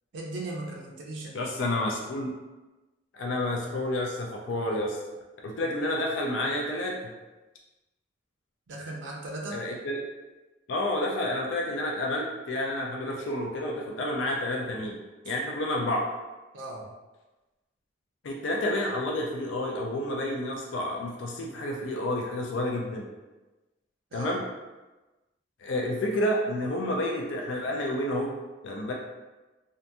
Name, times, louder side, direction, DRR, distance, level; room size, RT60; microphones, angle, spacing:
voice 1, 0.1-1.5 8.7-9.6 15.2-15.3 16.5-16.9 24.1-24.4, right 2 dB, 85° right, -2 dB, 0.5 m, -37 dB
voice 2, 1.3-2.3 3.1-5.0 5.4-7.1 9.5-10.0 10.7-15.0 15.3-16.1 18.2-23.1 24.1-24.4 25.6-28.3 28.6-28.9, left 1 dB, 90° left, 0 dB, 0.4 m, -30 dB
2.7 x 2.5 x 2.2 m, 1.1 s
head